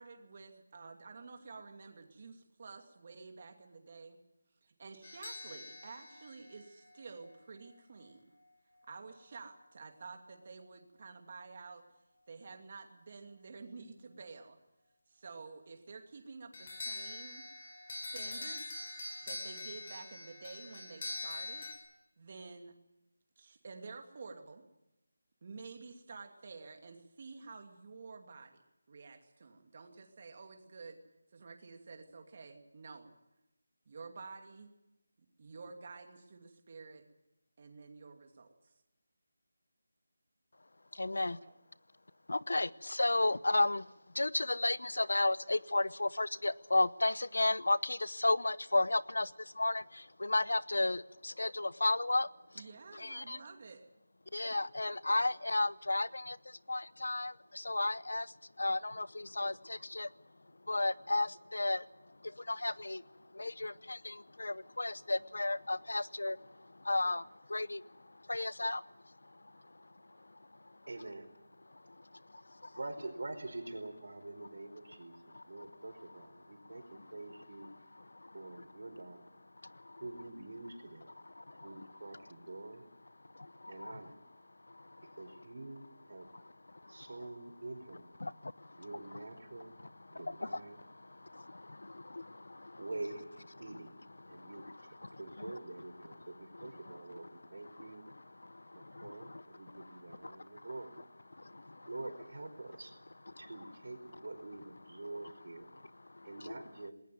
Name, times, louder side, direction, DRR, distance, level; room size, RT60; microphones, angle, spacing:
voice 1, 0.0-4.2 4.6-8.2 8.9-11.8 12.3-14.6 15.1-17.4 17.9-18.9 19.2-21.7 22.2-22.8 23.4-24.6 25.4-28.5 28.9-31.0 31.3-33.1 33.9-34.7 35.4-37.0 37.6-38.5 41.2-41.6 42.5-42.6 52.5-53.9, right 4 dB, 35° right, 5 dB, 2.6 m, -50 dB
sound 1, 5.0-7.3 16.5-21.7, left 2 dB, 40° left, 5.0 m, -44 dB
voice 2, 40.9-41.4 42.3-52.7 52.9-53.4 54.3-60.1 60.6-70.8 71.7-72.8 75.3-75.6 76.6-77.1 77.7-78.6 79.6-80.0 81.3-81.9 83.2-84.0 84.6-85.2 86.2-87.1 88.2-89.2 89.6-92.9 93.6-93.7 94.2-95.6 96.5-97.0 97.3-100.7 101.3-101.9 103.3-103.7 105.7-106.6, left 2 dB, 85° left, 19 dB, 0.8 m, -35 dB
voice 3, 70.9-71.3 72.8-75.1 75.5-77.7 78.3-79.3 80.0-81.1 81.6-82.8 83.7-84.1 85.2-86.3 86.9-88.1 88.8-89.7 90.1-90.8 92.8-93.9 94.3-94.6 95.2-98.0 98.7-101.0 101.9-102.9 103.4-105.7 106.2-106.9, right 2 dB, 70° right, 7 dB, 4.7 m, -46 dB
20.5 x 19.0 x 9.5 m, 0.92 s
figure-of-eight pair, 170°, 0 cm